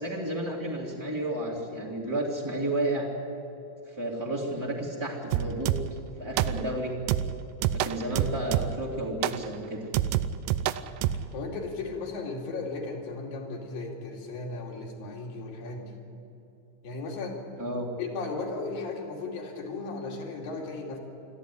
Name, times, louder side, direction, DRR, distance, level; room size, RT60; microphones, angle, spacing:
voice 1, 0.0-3.1 3.9-5.8 6.2-6.9 7.7-9.9 17.6-17.9, right 1 dB, 10° right, -4 dB, 1.5 m, -31 dB
sound 1, 5.3-6.0 6.4-6.8 7.1-8.9 9.2-9.5 9.9-11.3, right 11 dB, 80° right, 1.9 m, -28 dB
voice 2, 11.3-16.0 16.8-17.4 18.0-21.0, left 3 dB, 65° left, 1 dB, 4.4 m, -36 dB
24.0 x 14.0 x 10.0 m, 3.0 s
omnidirectional pair, 4.4 m